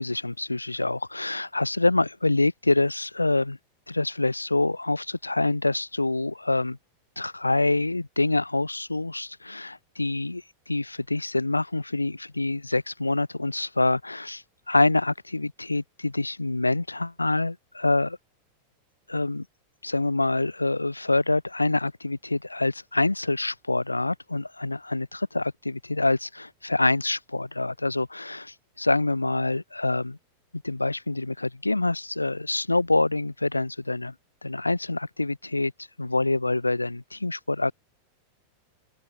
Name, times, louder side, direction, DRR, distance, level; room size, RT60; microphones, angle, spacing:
voice 1, 0.0-3.6 3.9-6.8 7.2-18.2 19.1-19.5 19.8-30.2 30.5-34.1 34.4-35.7 36.0-37.7, left 2 dB, 85° left, 2.3 m, -26 dB
open air
figure-of-eight pair, 90°, 0 cm